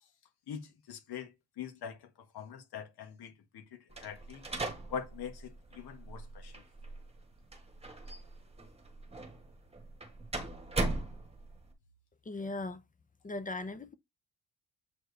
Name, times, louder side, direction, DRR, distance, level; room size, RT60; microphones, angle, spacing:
voice 1, 0.9-2.1 2.3-4.4 4.9-6.6, left 7 dB, 70° left, 1.7 m, -43 dB
sound 1, 3.9-11.7, right 2 dB, 15° right, 1.5 m, -40 dB
voice 2, 12.2-12.8 13.2-13.9, left 2 dB, 20° left, 0.7 m, -38 dB
7.6 x 4.5 x 3.3 m
cardioid pair, 140°, 40 cm